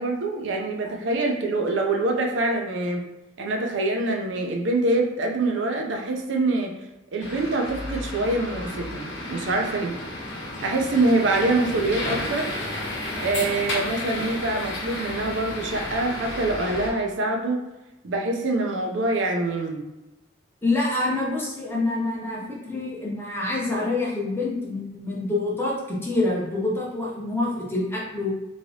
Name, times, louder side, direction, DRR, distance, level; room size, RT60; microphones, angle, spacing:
voice 1, 0.0-3.0 3.4-6.7 7.1-10.0 10.6-12.5 13.1-17.6 18.0-19.8, right 2 dB, 70° right, 2 dB, 0.5 m, -25 dB
sound 1, 7.2-16.9, left 1 dB, 70° left, 0.8 m, -32 dB
voice 2, 20.6-28.3, left 2 dB, 10° left, -5 dB, 0.7 m, -26 dB
3.1 x 2.8 x 2.7 m, 0.99 s
head